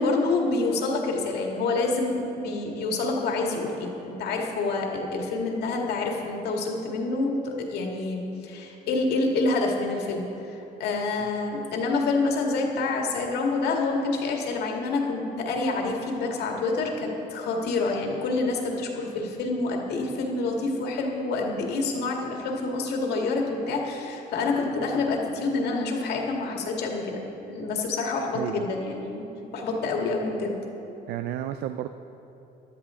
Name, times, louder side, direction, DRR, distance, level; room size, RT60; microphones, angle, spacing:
voice 1, 0.0-27.2 27.5-29.3 29.5-30.6, left 3 dB, 75° left, 0 dB, 2.0 m, -27 dB
voice 2, 28.3-28.7 31.1-31.9, right 12 dB, 75° right, 10 dB, 0.4 m, -32 dB
14.5 x 12.0 x 3.7 m, 3.0 s
cardioid pair, 110°, 17 cm